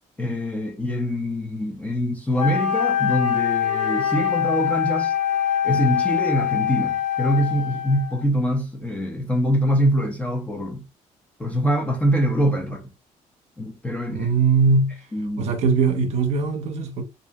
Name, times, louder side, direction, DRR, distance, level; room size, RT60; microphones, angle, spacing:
voice 1, 0.2-5.1 5.6-10.8 11.4-12.8 13.6-14.3 15.1-15.5, equal, 10° left, 0.5 m, -24 dB
Wind instrument woodwind instrument, 2.4-8.3, left 9 dB, 65° left, 0.9 m, -23 dB
voice 2, 14.1-15.0 15.4-17.0, right 4 dB, 55° right, 0.6 m, -21 dB
2.7 x 2.5 x 2.2 m
cardioid pair, 170°, 14 cm